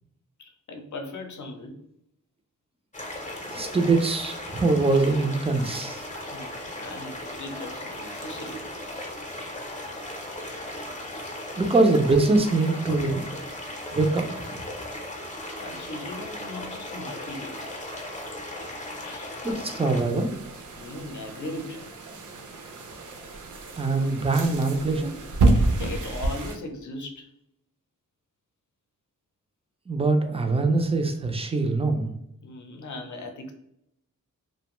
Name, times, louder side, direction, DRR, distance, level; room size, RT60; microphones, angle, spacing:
voice 1, 0.4-1.8 6.2-8.7 15.5-17.7 19.0-19.4 20.8-21.8 25.5-27.3 32.4-33.5, left 2 dB, 60° left, 4 dB, 0.6 m, -38 dB
sound 1, 2.9-20.0, left 1 dB, 20° left, 0.6 m, -37 dB
voice 2, 3.5-6.0 11.6-13.2 13.9-14.3 19.4-20.3 23.8-25.1 29.9-32.1, right 3 dB, 20° right, 5 dB, 0.4 m, -23 dB
sound 2, 20.0-26.6, right 2 dB, 65° right, 0.6 m, -28 dB
2.5 x 2.2 x 2.9 m, 0.75 s
wide cardioid pair, 90°, 33 cm